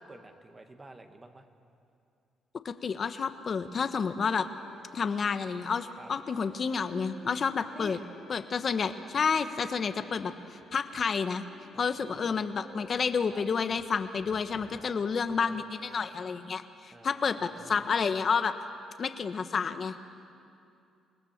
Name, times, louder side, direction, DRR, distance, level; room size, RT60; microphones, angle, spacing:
voice 1, 0.0-1.4 6.0-6.1 7.6-8.0 11.7-12.4 13.3-13.5 14.6-15.6 16.9-17.8, right 2 dB, 25° right, 6 dB, 1.9 m, -51 dB
voice 2, 2.6-4.5 4.9-8.0 8.3-10.3 10.7-11.4 11.8-18.5 19.0-20.0, left 5 dB, 45° left, 9 dB, 1.2 m, -30 dB
Bowed string instrument, 4.2-16.1, left 3 dB, 85° left, 4.6 m, -56 dB
28.0 x 18.5 x 7.4 m, 2.5 s
cardioid pair, 90°, 0 cm